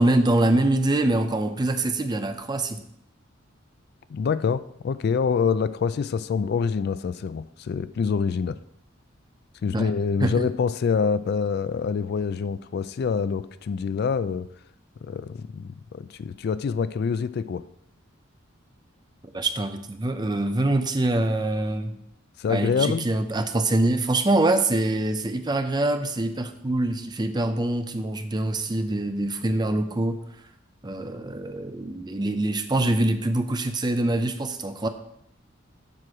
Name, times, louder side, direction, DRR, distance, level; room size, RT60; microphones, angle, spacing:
voice 1, 0.0-2.8 9.7-9.9 10.2-10.4 19.2-22.0 22.5-30.2 30.8-34.9, right 2 dB, 20° right, 8 dB, 0.6 m, -24 dB
voice 2, 4.1-8.6 9.6-14.5 15.0-17.6 22.4-23.1, left 6 dB, 55° left, 15 dB, 0.3 m, -26 dB
7.6 x 6.2 x 4.8 m, 0.74 s
head